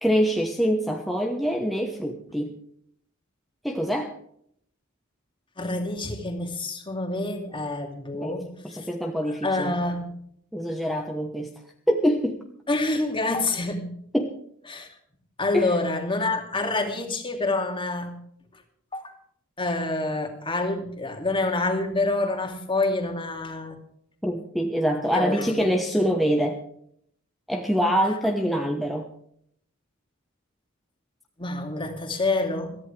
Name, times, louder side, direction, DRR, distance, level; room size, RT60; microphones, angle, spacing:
voice 1, 0.0-2.5 3.6-4.1 8.2-8.3 8.6-9.8 10.5-11.5 11.9-12.4 14.1-14.3 15.5-15.7 24.2-26.6 27.5-29.1, equal, ahead, 1 dB, 1.2 m, -25 dB
voice 2, 5.6-8.9 9.4-10.2 12.7-13.9 14.7-14.9 15.4-18.2 18.9-19.1 19.6-23.8 25.1-25.7 26.0-26.1 31.4-32.8, left 2 dB, 25° left, 3 dB, 2.7 m, -27 dB
22.0 x 14.5 x 3.4 m, 0.66 s
head